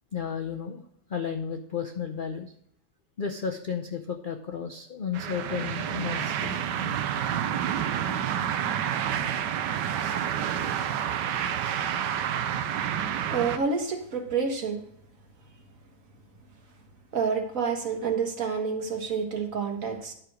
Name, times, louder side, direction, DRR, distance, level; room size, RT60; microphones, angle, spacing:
voice 1, 0.1-0.8 1.1-2.5 3.2-7.0 10.9-11.0 11.4-12.1 12.5-12.7, left 6 dB, 65° left, 4 dB, 0.5 m, -34 dB
sound 1, 5.1-13.6, right 9 dB, 75° right, 1.3 m, -29 dB
voice 2, 13.3-14.8 17.1-20.1, right 5 dB, 50° right, 4 dB, 1.7 m, -28 dB
10.5 x 5.0 x 6.3 m, 0.69 s
omnidirectional pair, 2.0 m